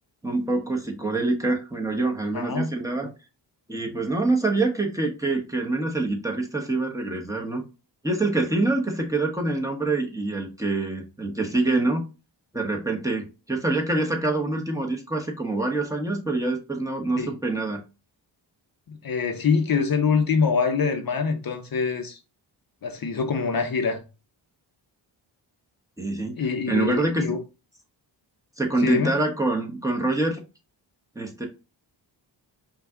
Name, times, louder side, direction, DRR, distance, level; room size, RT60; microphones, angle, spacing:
voice 1, 0.2-3.1 3.7-7.6 8.0-12.0 12.5-17.8 26.0-27.4 28.6-30.4 31.1-31.5, right 2 dB, 5° right, 1.0 m, -25 dB
voice 2, 2.3-2.7 17.2-17.3 18.9-22.2 22.8-24.0 26.3-27.4 28.8-29.1, left 5 dB, 50° left, 0.7 m, -24 dB
5.6 x 2.4 x 3.6 m
wide cardioid pair, 95°, 45 cm